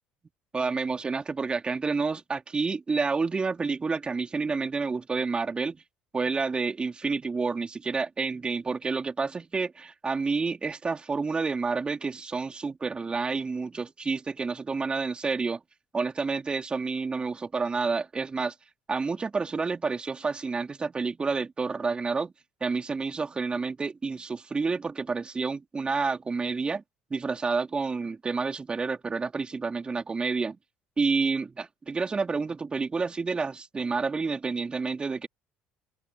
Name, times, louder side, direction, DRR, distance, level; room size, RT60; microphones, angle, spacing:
voice 1, 0.5-5.8 6.1-15.6 15.9-18.5 18.9-22.3 22.6-26.8 27.1-30.6 31.0-35.3, right 4 dB, 25° right, 3.8 m, -29 dB
hypercardioid pair, 65°, 4 cm